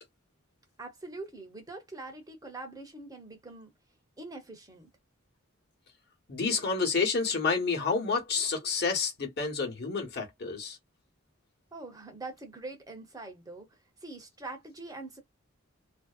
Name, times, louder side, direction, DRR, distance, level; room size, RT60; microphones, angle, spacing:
voice 1, 0.8-3.7 4.2-4.9 11.7-15.2, right 2 dB, 20° right, 0.8 m, -44 dB
voice 2, 6.3-10.8, left 4 dB, 50° left, 1.1 m, -29 dB
2.6 x 2.1 x 2.3 m
head